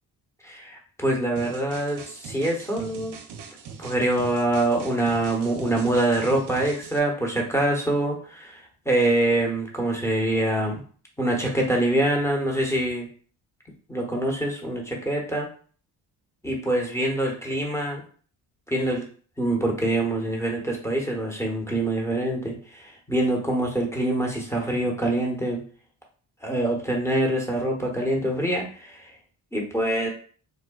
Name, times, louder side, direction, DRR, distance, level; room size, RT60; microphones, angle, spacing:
voice 1, 0.4-3.2 3.8-10.8 11.2-13.1 13.9-15.5 16.4-18.0 18.7-19.0 19.4-25.6 26.4-29.1 29.5-30.1, right 1 dB, 5° left, -1 dB, 1.0 m, -25 dB
sound 1, 1.4-7.0, right 6 dB, 55° right, 0.6 m, -41 dB
3.5 x 2.1 x 2.3 m, 0.43 s
hypercardioid pair, 45°, 50 cm